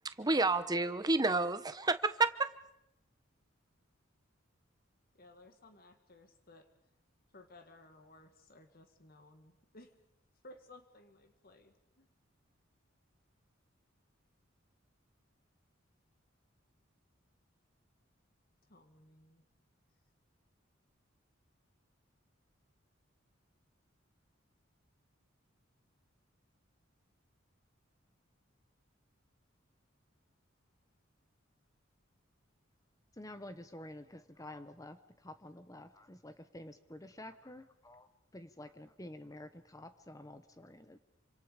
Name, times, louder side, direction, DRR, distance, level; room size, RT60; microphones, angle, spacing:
voice 1, 0.0-2.5, right 3 dB, 20° right, 12 dB, 0.9 m, -30 dB
voice 2, 5.2-6.7 7.3-9.9 10.4-12.1 18.7-19.5, left 2 dB, 50° left, 7 dB, 2.0 m, -58 dB
voice 3, 33.2-41.0, left 1 dB, 15° left, 10 dB, 1.1 m, -50 dB
27.5 x 26.0 x 5.2 m, 0.81 s
head